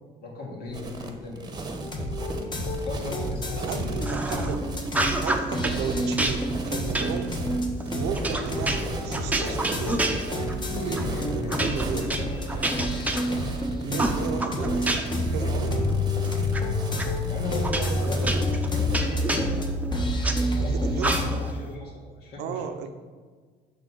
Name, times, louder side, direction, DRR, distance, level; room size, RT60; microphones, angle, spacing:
voice 1, 0.2-1.5 2.7-3.9 10.6-12.9 15.4-16.1 17.3-18.3 18.6-22.7, left 3 dB, 70° left, -3 dB, 2.2 m, -37 dB
sound 1, 0.7-19.1, right 2 dB, 25° right, 0.9 m, -37 dB
sound 2, 1.8-21.3, left 1 dB, 25° left, 1.1 m, -28 dB
voice 2, 3.6-4.7 5.2-7.4 7.9-12.2 13.8-15.8 20.6-21.1 22.4-22.9, right 6 dB, 85° right, 7 dB, 0.7 m, -35 dB
sound 3, 4.0-4.6 4.9-5.8 6.2-10.6 10.9-11.1 11.5-13.6 14.0-15.3 15.6-16.6 17.0-17.1 17.6-20.4 21.0-21.5, right 2 dB, 10° right, 0.7 m, -29 dB
6.5 x 3.9 x 6.2 m, 1.5 s
cardioid pair, 110°, 17 cm